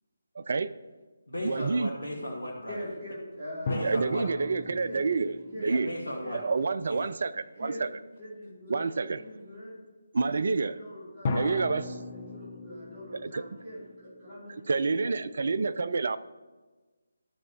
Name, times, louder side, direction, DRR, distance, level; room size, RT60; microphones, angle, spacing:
voice 1, 0.4-0.7 1.4-1.9 3.7-5.3 5.6-5.9 6.3-7.3 7.6-7.9 8.7-9.2 10.1-10.8 11.3-11.9 13.2-13.4 14.7-16.2, right 4 dB, 50° right, 14 dB, 0.4 m, -28 dB
voice 2, 1.3-2.8 3.7-4.2 5.6-6.4 6.9-7.0, equal, 70° left, -3 dB, 1.4 m, -35 dB
voice 3, 2.7-5.0 5.5-5.7 6.2-6.4 7.6-7.8 8.2-9.8 10.2-15.4, equal, 25° right, -9 dB, 3.1 m, -43 dB
sound 1, 3.7-7.0 11.2-14.6, left 3 dB, 30° left, 0.8 m, -38 dB
13.5 x 6.1 x 3.0 m, 1.3 s
figure-of-eight pair, 150°, 0 cm